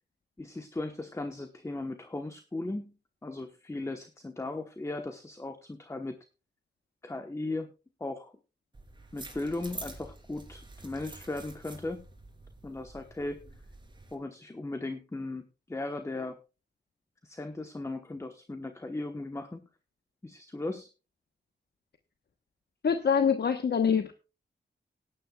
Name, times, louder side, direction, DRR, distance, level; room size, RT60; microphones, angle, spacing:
voice 1, 0.4-2.9 3.2-6.2 7.0-7.7 8.0-8.4 9.1-12.0 12.6-13.4 14.1-16.4 17.2-19.6 20.2-20.9, left 2 dB, 15° left, 6 dB, 1.1 m, -37 dB
sound 1, 8.7-14.1, right 2 dB, 25° right, 3.3 m, -47 dB
voice 2, 22.8-24.1, left 7 dB, 65° left, 7 dB, 1.0 m, -25 dB
18.0 x 9.9 x 2.3 m, 0.30 s
wide cardioid pair, 145°, 18 cm